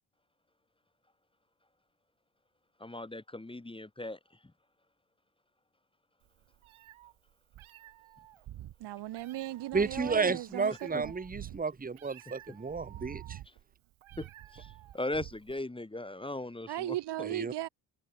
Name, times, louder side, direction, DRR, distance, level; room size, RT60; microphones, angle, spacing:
voice 1, 2.8-4.2 10.9-11.0 14.2-14.3 14.5-17.3, left 2 dB, 10° left, 1.2 m, -38 dB
Meow, 6.2-15.6, right 13 dB, 75° right, 3.8 m, -49 dB
voice 2, 8.8-11.1 16.7-17.7, right 15 dB, 55° right, 0.7 m, -37 dB
voice 3, 9.7-13.4 17.2-17.5, right 4 dB, 15° right, 1.2 m, -32 dB
supercardioid pair, 55°, 49 cm